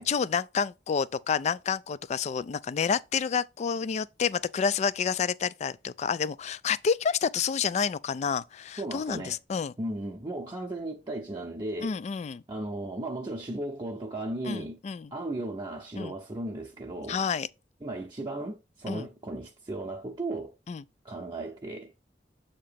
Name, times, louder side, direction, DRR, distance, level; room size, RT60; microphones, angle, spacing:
voice 1, 0.0-9.7 11.8-12.4 14.5-15.1 16.0-16.1 17.1-17.5 18.9-19.1 20.7-20.8, left 6 dB, 40° left, 0.3 m, -29 dB
voice 2, 8.8-9.4 9.8-11.9 12.5-14.8 15.1-17.2 17.8-20.5 21.0-21.9, right 1 dB, 25° right, 0.7 m, -35 dB
7.5 x 2.9 x 5.0 m
head